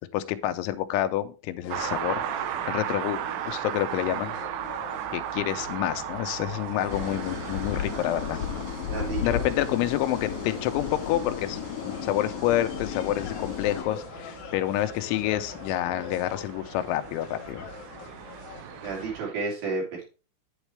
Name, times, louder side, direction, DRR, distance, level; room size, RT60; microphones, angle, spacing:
voice 1, 0.1-4.3 5.1-8.4 9.2-17.7, left 13 dB, 85° left, 9 dB, 3.1 m, -28 dB
sound 1, 1.6-19.1, left 6 dB, 70° left, 1.8 m, -44 dB
sound 2, 1.7-19.3, right 11 dB, 80° right, 2.8 m, -37 dB
sound 3, 6.9-13.8, left 7 dB, 40° left, 4.0 m, -34 dB
voice 2, 8.9-9.4 18.8-20.1, right 4 dB, 55° right, -3 dB, 4.8 m, -31 dB
8.2 x 8.1 x 3.2 m, 0.34 s
omnidirectional pair, 5.3 m